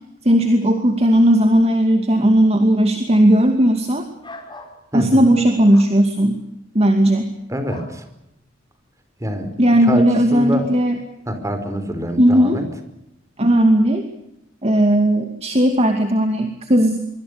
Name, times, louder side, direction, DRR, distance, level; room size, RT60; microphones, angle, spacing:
voice 1, 0.2-4.0 4.9-6.4 6.7-7.3 9.6-11.0 12.2-12.6 13.4-14.0 14.6-17.0, right 1 dB, 30° right, 5 dB, 2.5 m, -16 dB
sound 1, 4.2-4.8 5.7-5.9 7.7-8.0, left 2 dB, 25° left, 5.0 m, -38 dB
voice 2, 4.9-5.3 7.5-8.0 9.2-9.5 9.8-10.0 10.3-10.7 11.3-12.6, equal, 15° right, 8 dB, 5.0 m, -25 dB
25.5 x 24.0 x 6.8 m, 0.82 s
head